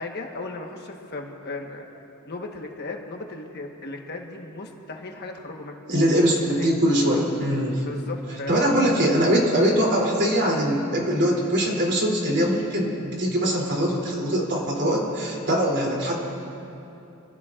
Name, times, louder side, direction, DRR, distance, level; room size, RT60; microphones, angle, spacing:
voice 1, 0.0-1.8 2.3-5.8 6.3-6.8 7.9-8.7 9.0-9.1 15.4-15.6, left 2 dB, 50° left, 2 dB, 1.3 m, -36 dB
voice 2, 5.9-7.8 8.5-16.1, equal, 55° right, -2 dB, 3.0 m, -22 dB
25.5 x 15.5 x 2.5 m, 2.8 s
head